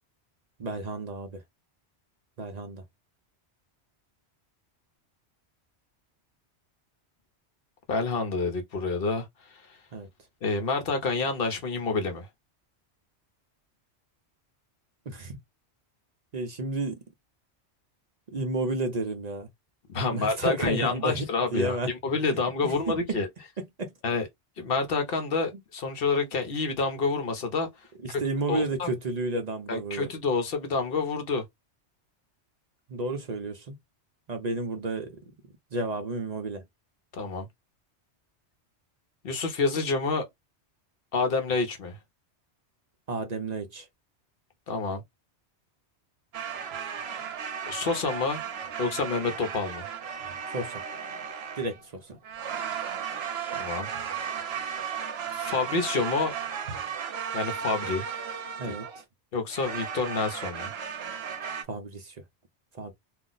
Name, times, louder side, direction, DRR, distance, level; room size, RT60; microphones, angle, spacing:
voice 1, 0.6-1.4 2.4-2.8 9.9-10.1 15.1-15.3 16.3-17.0 18.3-19.5 20.1-21.9 22.6-23.2 23.6-23.9 28.0-30.1 32.9-33.8 34.3-35.3 35.7-36.6 43.1-43.9 50.5-50.8 51.6-52.2 58.6-58.9 61.7-62.2 62.7-62.9, right 2 dB, 45° right, 0.6 m, -31 dB
voice 2, 7.9-9.6 10.4-12.3 19.9-21.8 22.0-23.3 24.0-24.3 24.6-27.7 28.1-28.2 28.5-28.9 29.7-31.4 37.1-37.5 39.2-40.2 41.1-42.0 44.7-45.0 47.7-48.4 48.8-49.9 53.5-53.9 54.4-54.6 55.3-56.3 57.3-58.1 58.6-58.8 59.3-60.7, left 4 dB, 60° left, 0.9 m, -28 dB
sound 1, 46.3-51.8 52.2-59.0 59.5-61.6, right 7 dB, 70° right, 0.9 m, -35 dB
2.4 x 2.0 x 3.8 m
omnidirectional pair, 1.2 m